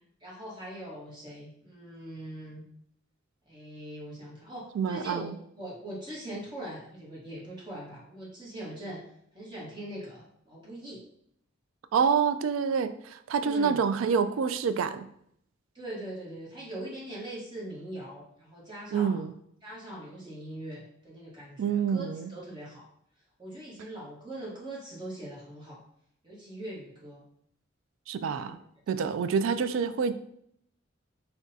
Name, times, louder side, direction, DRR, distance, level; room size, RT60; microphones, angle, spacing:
voice 1, 0.2-2.6 3.5-5.3 5.5-9.0 9.3-11.0 13.4-13.8 15.7-19.3 19.6-22.8 23.4-25.8 26.2-27.2 28.3-28.6 28.9-29.0, right 1 dB, 25° right, -6 dB, 1.2 m, -41 dB
voice 2, 4.8-5.3 11.9-15.0 18.9-19.3 21.6-22.3 28.1-28.6 28.9-30.2, right 6 dB, 90° right, 11 dB, 0.3 m, -27 dB
6.1 x 2.3 x 2.7 m, 0.70 s
head